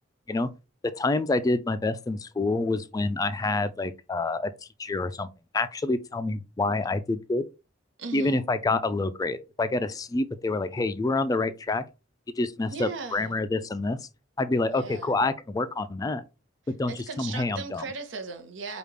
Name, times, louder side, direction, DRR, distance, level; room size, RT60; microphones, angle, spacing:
voice 1, 1.0-4.5 4.8-5.3 5.5-7.5 8.1-11.8 12.4-14.0 14.4-16.2 16.8-16.9 17.2-17.8, left 2 dB, 20° left, 0.3 m, -27 dB
voice 2, 8.0-8.4 12.7-13.4 14.7-15.1 16.6-18.8, right 4 dB, 80° right, 0.9 m, -38 dB
5.1 x 2.4 x 3.2 m
head